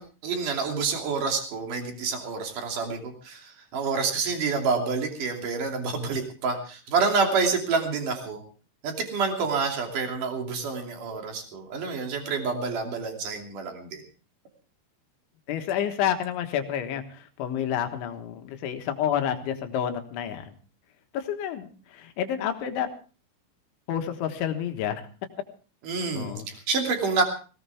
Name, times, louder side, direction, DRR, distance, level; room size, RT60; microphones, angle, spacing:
voice 1, 0.0-8.4 8.8-14.0 25.8-27.2, right 4 dB, 45° right, 3 dB, 4.0 m, -28 dB
voice 2, 15.5-20.5 21.1-22.9 23.9-25.0 26.2-26.5, left 9 dB, 75° left, 6 dB, 3.7 m, -29 dB
18.5 x 18.0 x 3.5 m, 0.37 s
omnidirectional pair, 5.5 m